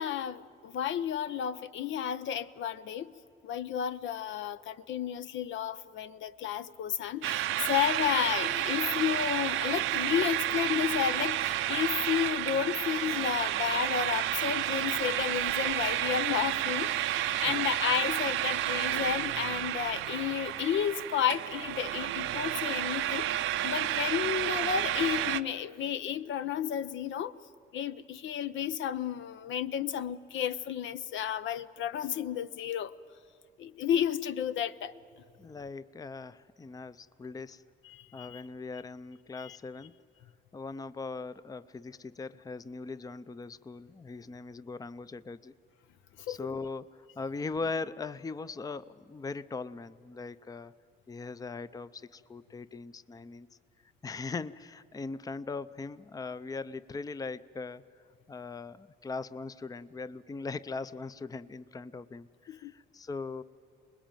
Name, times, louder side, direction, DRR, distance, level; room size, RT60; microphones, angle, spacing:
voice 1, 0.0-3.1 3.4-23.3 23.6-27.3 27.7-32.9 33.6-34.9 37.8-38.4 39.3-39.6 46.3-46.5 62.5-62.7, left 9 dB, 70° left, 14 dB, 0.7 m, -32 dB
sound 1, 7.2-25.4, right 13 dB, 90° right, 0.7 m, -31 dB
voice 2, 35.4-37.6 38.1-39.9 40.5-45.5 46.3-50.7 51.1-53.5 54.0-57.8 58.3-63.4, left 4 dB, 20° left, 15 dB, 0.5 m, -40 dB
24.5 x 20.5 x 9.0 m, 2.6 s
cardioid pair, 90°, 20 cm